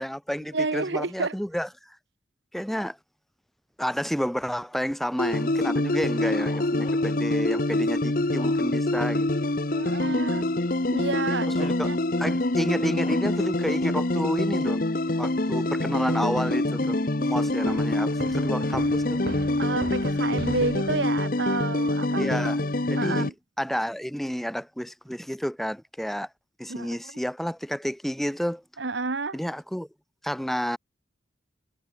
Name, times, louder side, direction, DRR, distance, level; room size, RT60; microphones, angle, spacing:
voice 1, 0.0-2.0 2.5-3.0 3.8-9.3 11.6-11.9 12.2-14.8 15.2-19.2 22.2-22.6 22.9-23.3 23.6-26.3 26.6-28.6 29.3-29.9 30.2-30.8, equal, ahead, 0.4 m, -30 dB
voice 2, 0.5-1.3 9.7-10.5 10.9-12.0 19.6-22.4 23.0-23.3 26.7-27.1 28.8-29.4, right 3 dB, 75° right, 1.2 m, -30 dB
sound 1, 5.2-23.3, left 2 dB, 50° left, 1.1 m, -25 dB
Bark, 6.2-7.3 7.9-9.1 9.5-9.7 10.8-11.0 11.5-12.3 13.0-13.4, left 3 dB, 30° left, 7.3 m, -45 dB
sound 2, 17.7-21.3, right 1 dB, 55° right, 2.2 m, -39 dB
head